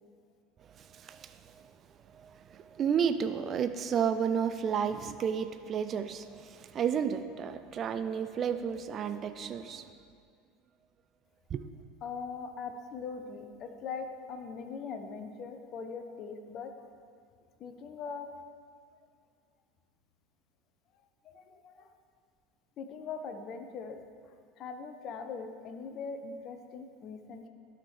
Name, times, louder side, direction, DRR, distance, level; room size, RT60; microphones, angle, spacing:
voice 1, 0.8-1.7 2.1-9.9 11.5-11.6, right 7 dB, 35° right, 10 dB, 0.4 m, -32 dB
voice 2, 12.0-16.7 17.6-18.3 21.2-21.9 22.8-24.0 24.6-27.5, left 5 dB, 40° left, 7 dB, 0.7 m, -41 dB
12.0 x 5.8 x 3.2 m, 2.2 s
figure-of-eight pair, 75°, 0 cm